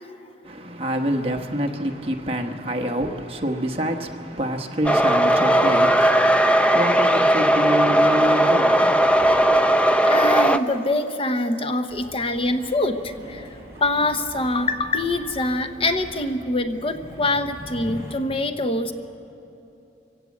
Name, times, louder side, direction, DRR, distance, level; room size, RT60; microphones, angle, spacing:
voice 1, 0.4-9.5, equal, 35° right, 1.2 m, -27 dB
sound 1, 4.8-10.6, right 1 dB, 5° left, 0.5 m, -17 dB
voice 2, 10.0-18.9, left 2 dB, 30° left, 0.8 m, -24 dB
sound 2, 11.9-18.1, equal, 15° right, 5.6 m, -41 dB
24.5 x 16.0 x 8.4 m
head